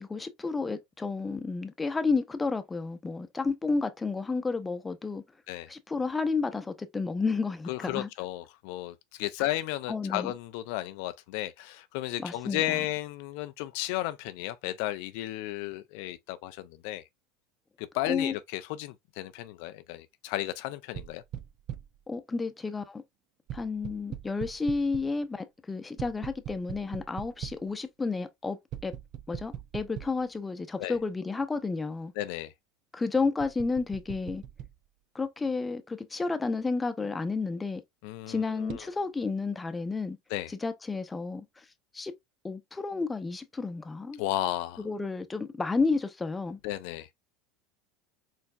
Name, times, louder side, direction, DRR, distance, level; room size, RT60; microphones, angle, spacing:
voice 1, 0.0-5.2 5.7-8.1 9.9-10.3 12.2-12.8 18.1-18.3 22.1-23.0 23.5-28.9 29.3-32.1 32.9-34.4 35.1-37.8 38.3-40.2 40.6-41.4 41.9-42.1 42.4-44.2 44.8-46.6, left 4 dB, 15° left, 0.7 m, -31 dB
voice 2, 7.7-17.1 17.8-21.2 30.8-31.0 32.2-32.5 38.0-38.9 40.3-40.5 44.2-44.8 46.6-47.1, left 15 dB, 70° left, 0.4 m, -34 dB
sound 1, 20.9-22.0 23.5-25.2 26.0-27.7 28.7-30.3 31.0-31.1 33.4-34.8 38.7-38.9, right 10 dB, 50° right, 0.4 m, -41 dB
4.5 x 3.4 x 2.4 m
hypercardioid pair, 90°, 0 cm